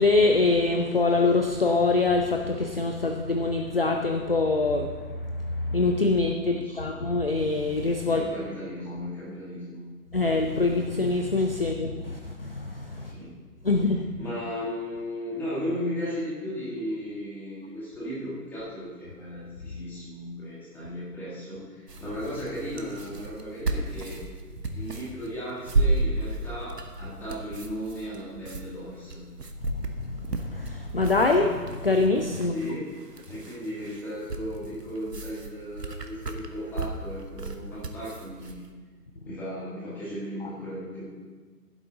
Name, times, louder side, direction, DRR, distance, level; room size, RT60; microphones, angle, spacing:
voice 1, 0.0-4.9 5.6-8.2 10.1-13.1 13.6-14.1 29.6-32.5, left 3 dB, 40° left, 4 dB, 0.5 m, -24 dB
voice 2, 6.5-6.9 8.0-9.8 13.0-13.4 14.2-24.2 24.7-29.2 32.4-32.9 33.3-38.6 39.2-41.1, equal, 5° left, -8 dB, 1.5 m, -36 dB
sound 1, 21.9-38.6, right 2 dB, 75° right, 1.2 m, -33 dB
15.0 x 8.0 x 3.7 m, 1.4 s
figure-of-eight pair, 140°, 48 cm